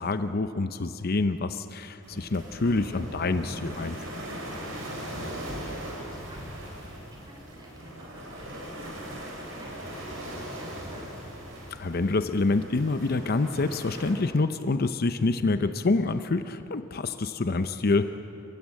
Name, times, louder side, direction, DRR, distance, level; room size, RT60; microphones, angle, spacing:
voice 1, 0.0-4.0 11.8-18.1, left 3 dB, 50° left, 10 dB, 0.6 m, -27 dB
sound 1, 2.0-14.1, equal, 80° right, 4.9 m, -39 dB
voice 2, 4.5-11.2, right 1 dB, 20° right, -2 dB, 5.7 m, -53 dB
29.5 x 15.5 x 8.4 m, 3.0 s
head